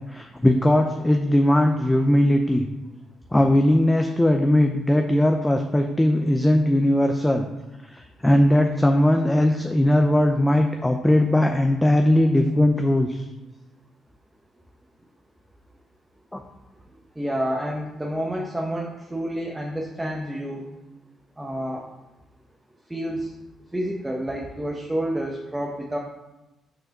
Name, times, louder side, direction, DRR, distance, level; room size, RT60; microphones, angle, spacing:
voice 1, 0.1-2.7 3.3-7.4 7.9-13.2 16.3-16.4, left 1 dB, 10° left, 4 dB, 0.5 m, -19 dB
voice 2, 17.2-20.7 21.4-21.8 22.9-23.3 23.7-26.0, right 1 dB, 10° right, -1 dB, 0.9 m, -29 dB
6.4 x 4.6 x 5.9 m, 1.0 s
cardioid pair, 90°, 0 cm